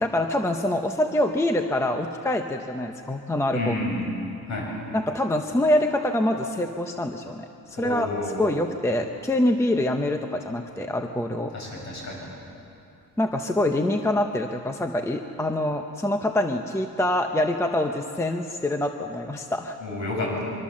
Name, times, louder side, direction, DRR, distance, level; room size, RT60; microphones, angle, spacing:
voice 1, 0.0-3.7 4.9-8.1 8.4-11.5 13.2-19.8, left 1 dB, 10° left, 5 dB, 0.7 m, -25 dB
voice 2, 3.5-4.1 4.5-4.7 7.8-8.5 11.5-12.3 19.8-20.5, left 2 dB, 50° left, -2 dB, 7.9 m, -30 dB
24.5 x 24.0 x 7.4 m, 2.7 s
cardioid pair, 180°, 35 cm